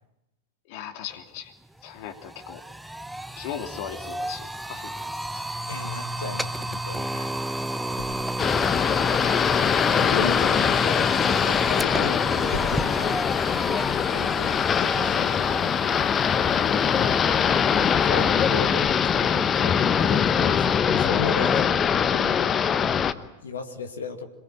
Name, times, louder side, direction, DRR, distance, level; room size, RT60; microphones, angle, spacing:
voice 1, 0.7-1.5 1.8-2.6 3.4-5.0, left 9 dB, 45° left, 6 dB, 3.2 m, -38 dB
sound 1, 1.4-1.5 1.8-20.8, right 1 dB, 5° right, 0.9 m, -33 dB
voice 2, 5.7-7.4 9.9-13.2 13.7-14.6 14.8-15.5 17.8-22.4 22.9-24.3, left 5 dB, 70° left, 6 dB, 2.3 m, -36 dB
sound 2, 8.0-13.4 13.9-14.0 14.3-14.4, left 1 dB, 90° left, 4.6 m, -40 dB
sound 3, 8.4-23.1, left 7 dB, 25° left, 1.1 m, -22 dB
26.5 x 22.0 x 9.1 m, 0.89 s
figure-of-eight pair, 90°, 0 cm